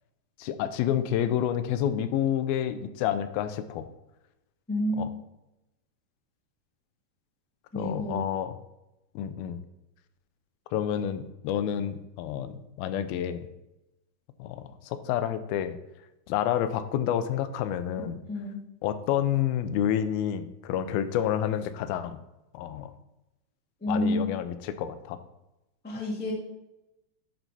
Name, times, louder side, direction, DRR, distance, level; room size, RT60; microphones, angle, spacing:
voice 1, 0.4-3.9 5.0-5.1 7.8-8.5 9.2-9.6 10.7-13.5 14.4-15.8 16.3-18.2 18.8-22.2 22.5-22.9 23.9-25.2 25.9-26.0, left 10 dB, 90° left, 11 dB, 2.5 m, -29 dB
voice 2, 4.7-5.0 7.7-8.2 18.3-18.6 23.8-24.2 25.8-26.3, left 1 dB, 15° left, -3 dB, 0.4 m, -29 dB
11.0 x 4.6 x 4.1 m, 0.94 s
omnidirectional pair, 4.2 m